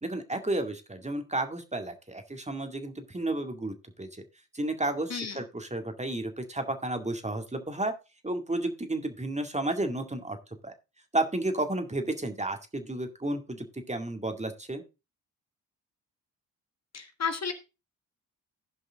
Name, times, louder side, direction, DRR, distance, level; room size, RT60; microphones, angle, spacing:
voice 1, 0.0-4.1 4.5-7.9 8.2-10.4 10.6-10.7 11.1-14.8, right 2 dB, 15° right, 6 dB, 2.0 m, -32 dB
voice 2, 16.9-17.5, left 6 dB, 40° left, 7 dB, 1.6 m, -32 dB
15.5 x 5.4 x 3.6 m, 0.28 s
hypercardioid pair, 50°, 39 cm